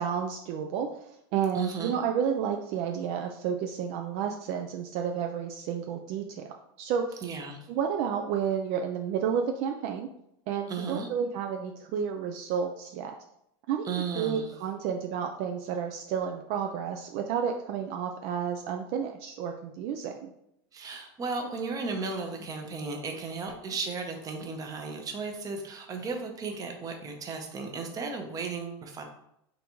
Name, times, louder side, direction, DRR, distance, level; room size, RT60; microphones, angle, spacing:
voice 1, 0.0-6.5 6.8-7.2 7.7-10.1 10.5-13.1 13.7-20.3, right 7 dB, 55° right, 3 dB, 0.4 m, -31 dB
voice 2, 1.5-2.0 7.2-7.6 10.7-11.1 13.8-14.5 20.7-29.0, right 4 dB, 25° right, 4 dB, 0.7 m, -35 dB
3.9 x 3.4 x 3.0 m, 0.78 s
supercardioid pair, 125°, 13 cm